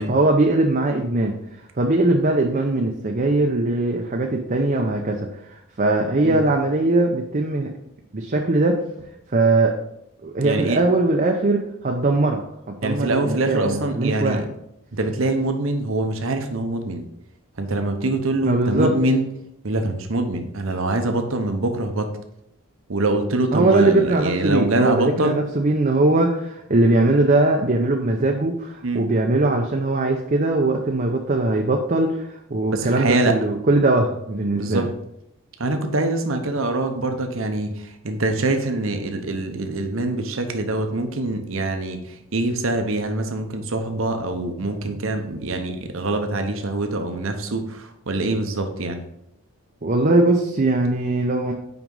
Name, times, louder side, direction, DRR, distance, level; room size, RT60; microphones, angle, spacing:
voice 1, 0.0-1.3 1.8-5.3 5.8-7.7 8.1-8.8 9.3-9.8 10.2-12.4 12.7-14.4 18.4-19.0 23.5-34.8 49.8-51.5, right 2 dB, 40° right, 1 dB, 0.7 m, -20 dB
voice 2, 10.4-10.8 12.8-14.4 14.9-17.0 17.6-19.3 19.6-22.1 22.9-25.4 28.8-29.1 32.7-33.4 34.5-34.9 35.6-49.0, right 2 dB, 65° right, 6 dB, 0.9 m, -24 dB
6.0 x 5.2 x 5.4 m, 0.80 s
head